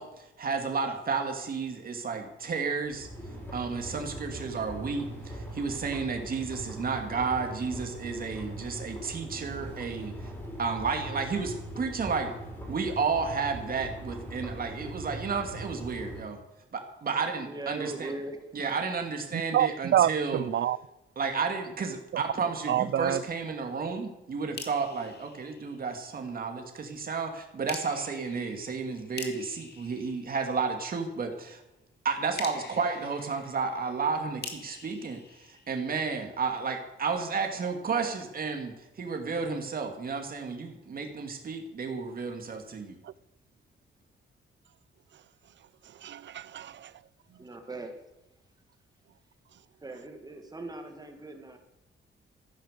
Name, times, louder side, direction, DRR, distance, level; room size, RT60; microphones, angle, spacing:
voice 1, 0.0-3.1 3.5-10.1 10.6-12.3 12.7-16.4 16.7-18.1 18.5-20.5 21.2-31.6 32.0-43.0, right 5 dB, 45° right, 2.4 m, -32 dB
sound 1, 2.8-16.2, right 1 dB, 10° left, 4.5 m, -41 dB
voice 2, 17.4-18.7 47.4-48.0 49.8-51.6, right 2 dB, 20° right, 1.8 m, -40 dB
voice 3, 19.5-20.8 22.7-23.2 46.0-46.7, right 11 dB, 60° right, 0.5 m, -26 dB
sound 2, 24.6-26.3 27.7-31.0 32.4-36.3, left 5 dB, 50° left, 2.0 m, -45 dB
15.0 x 10.5 x 6.8 m
wide cardioid pair, 175°, 21 cm